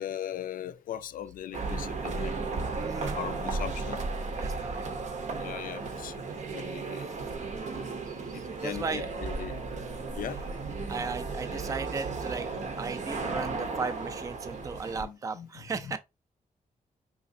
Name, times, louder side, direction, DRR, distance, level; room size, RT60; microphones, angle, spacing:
voice 1, 0.0-2.4 3.0-4.1 5.4-6.2 6.5-7.1 7.7-7.9 8.3-10.4 13.2-13.4 14.8-16.0, left 10 dB, 85° left, 0.4 m, -40 dB
sound 1, 1.5-15.0, right 4 dB, 60° right, 0.7 m, -35 dB
voice 2, 2.8-3.5 4.3-4.8 8.1-9.1 9.8-9.9 10.9-12.5 12.8-16.0, right 4 dB, 25° right, 0.4 m, -36 dB
4.9 x 3.0 x 2.6 m
wide cardioid pair, 135°, 14 cm